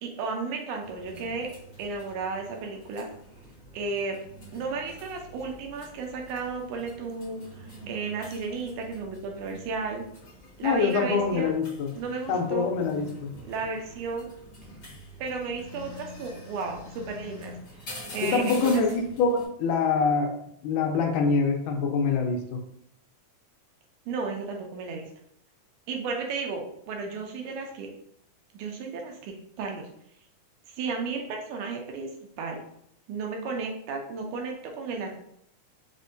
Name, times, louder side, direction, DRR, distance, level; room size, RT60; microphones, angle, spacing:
voice 1, 0.0-1.5 1.8-3.1 3.7-4.2 4.5-10.0 10.6-11.5 12.0-12.7 13.4-14.3 15.2-17.5 18.1-18.8 24.1-25.1 25.9-27.9 28.5-29.9 30.7-32.1 32.4-32.6 33.1-35.2, right 4 dB, 85° right, 2 dB, 2.0 m, -33 dB
sound 1, 0.8-19.4, equal, 65° left, 0.8 m, -46 dB
voice 2, 10.6-11.9 12.3-13.3 18.2-20.3 20.6-22.6, left 4 dB, 85° left, 3 dB, 2.0 m, -25 dB
5.3 x 2.1 x 2.6 m, 0.70 s
omnidirectional pair, 3.5 m